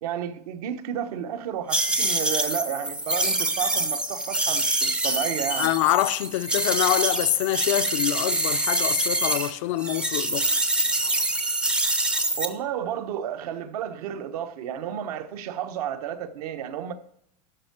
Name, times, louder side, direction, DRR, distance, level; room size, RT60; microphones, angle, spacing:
voice 1, 0.0-5.7 12.4-16.9, right 9 dB, 65° right, 1.2 m, -32 dB
sound 1, 1.7-9.5 9.8-12.5, right 1 dB, 5° right, 0.6 m, -25 dB
voice 2, 5.6-10.6, left 15 dB, 50° left, 0.5 m, -25 dB
12.0 x 4.7 x 8.2 m
supercardioid pair, 170°, 21 cm